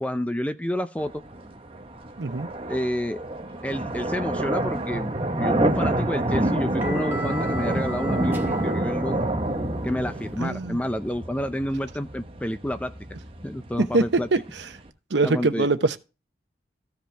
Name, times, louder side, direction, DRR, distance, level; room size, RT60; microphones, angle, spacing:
voice 1, 0.0-1.2 2.7-3.2 3.6-9.2 9.8-12.9 13.4-14.3 15.2-15.7, left 1 dB, 10° left, 0.4 m, -29 dB
sound 1, 1.0-14.9, right 1 dB, 30° right, 1.1 m, -28 dB
voice 2, 2.2-2.5 10.4-10.8 13.9-14.7 15.1-16.0, right 3 dB, 80° right, 0.8 m, -23 dB
sound 2, 5.7-10.5, left 1 dB, 10° right, 1.4 m, -41 dB
14.5 x 5.2 x 3.3 m
head